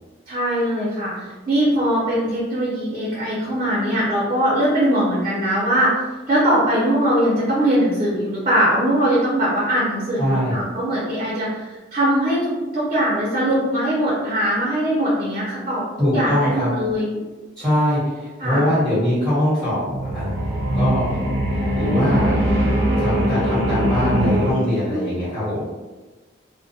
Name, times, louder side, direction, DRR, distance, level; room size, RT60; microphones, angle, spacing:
voice 1, 0.3-15.8 16.1-17.2 18.4-18.6 24.9-25.0, equal, 35° right, -7 dB, 0.6 m, -21 dB
voice 2, 10.2-10.5 16.0-16.7 17.6-19.8 20.1-20.3 20.7-21.0 21.7-22.5 23.0-25.6, equal, 5° left, -12 dB, 1.2 m, -22 dB
sound 1, 19.8-24.5, equal, 80° right, 0.7 m, -21 dB
2.3 x 2.1 x 2.7 m, 1.2 s
head